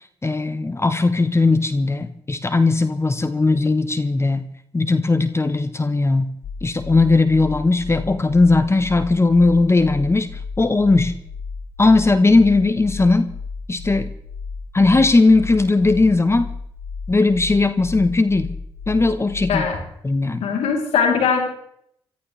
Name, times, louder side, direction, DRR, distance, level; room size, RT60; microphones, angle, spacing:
voice 1, 0.2-4.5 4.7-6.3 6.6-10.3 10.6-11.1 11.8-13.3 13.7-14.1 14.7-16.5 17.1-18.5 18.9-19.7 20.0-20.4, left 3 dB, 25° left, 11 dB, 1.0 m, -17 dB
sound 1, 6.4-19.8, left 4 dB, 60° left, 1.2 m, -33 dB
voice 2, 19.5-19.8 20.4-21.4, left 6 dB, 75° left, 2 dB, 3.1 m, -20 dB
25.5 x 14.0 x 3.3 m, 0.71 s
hypercardioid pair, 45°, 11 cm